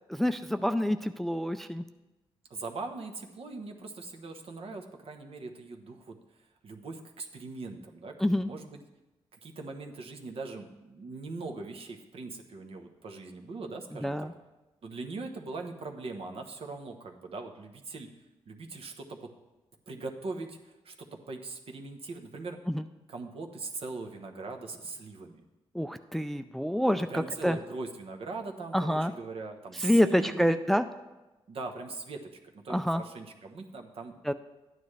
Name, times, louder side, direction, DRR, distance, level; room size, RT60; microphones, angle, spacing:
voice 1, 0.1-1.8 8.2-8.5 14.0-14.3 22.7-22.8 25.7-27.6 28.7-29.1 29.8-30.8 32.7-33.0 34.3-34.4, equal, ahead, 9 dB, 0.3 m, -27 dB
voice 2, 2.5-6.2 6.6-8.8 9.3-14.3 14.8-18.1 18.5-19.3 19.9-22.6 23.1-25.4 27.1-30.6 31.5-34.2, right 3 dB, 65° right, 3 dB, 1.1 m, -41 dB
12.0 x 9.4 x 3.3 m, 1.1 s
cardioid pair, 95°, 11 cm